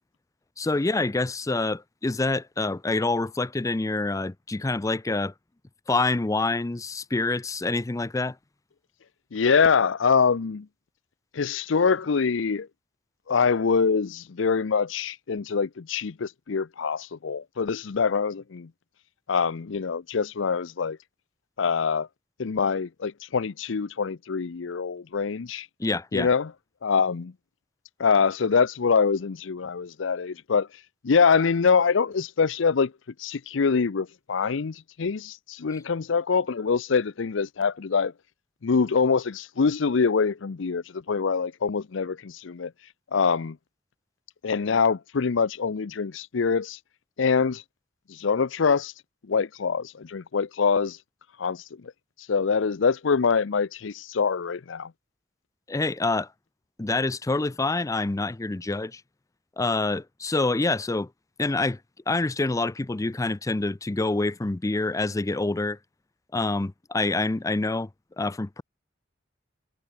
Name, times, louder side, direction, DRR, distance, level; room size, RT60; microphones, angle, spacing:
voice 1, 0.6-5.3 5.9-8.4 25.8-26.3 55.7-56.3 56.8-59.0 59.6-61.1 61.4-61.8 62.1-65.8 66.3-67.9 68.2-68.6, left 2 dB, 15° left, 0.5 m, -26 dB
voice 2, 9.3-10.7 11.3-12.7 13.3-18.7 19.3-21.0 21.6-22.1 22.4-25.7 26.1-26.5 26.8-27.3 28.0-30.7 31.0-32.9 33.2-38.1 38.6-42.7 43.1-43.6 44.4-46.8 47.2-47.6 48.1-48.9 49.3-51.0 51.4-51.9 52.3-54.9, left 5 dB, 85° left, 0.6 m, -24 dB
head